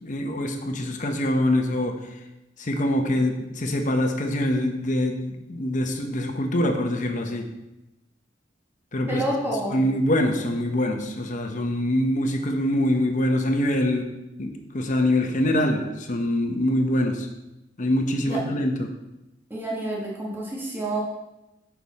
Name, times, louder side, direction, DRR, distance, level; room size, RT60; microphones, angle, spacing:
voice 1, 0.0-2.0 2.6-7.5 8.9-9.2 9.7-14.1 14.4-17.3 17.8-18.9, left 1 dB, 45° left, 4 dB, 0.8 m, -24 dB
voice 2, 9.1-9.8 18.2-18.4 19.5-21.0, right 1 dB, 10° right, -4 dB, 1.2 m, -28 dB
6.7 x 5.8 x 4.1 m, 0.96 s
head